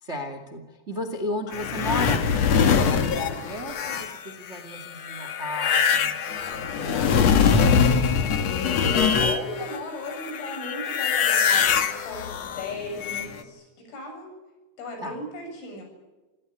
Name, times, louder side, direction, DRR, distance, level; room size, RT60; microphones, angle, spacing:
voice 1, 0.0-8.2 15.0-15.2, left 1 dB, 35° right, 8 dB, 1.1 m, -35 dB
sound 1, 1.5-9.8 10.0-13.4, left 6 dB, 65° left, 1.6 m, -23 dB
voice 2, 8.9-14.3 14.8-15.8, left 2 dB, 85° left, 2 dB, 10.0 m, -36 dB
27.5 x 17.5 x 8.9 m, 1.2 s
omnidirectional pair, 5.6 m